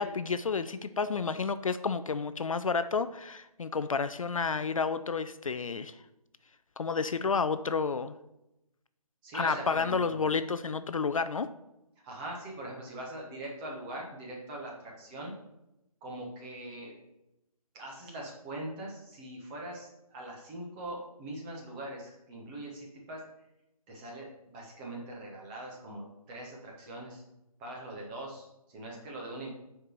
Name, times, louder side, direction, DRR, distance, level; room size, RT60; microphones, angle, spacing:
voice 1, 0.0-6.0 6.8-8.2 9.3-11.5, left 5 dB, 60° left, 12 dB, 0.4 m, -30 dB
voice 2, 9.2-10.3 12.0-15.3 16.0-17.0 17.7-23.2 23.9-26.0 26.3-27.2 27.6-29.5, right 1 dB, 15° right, -2 dB, 1.2 m, -42 dB
6.4 x 4.6 x 6.3 m, 0.90 s
figure-of-eight pair, 150°, 19 cm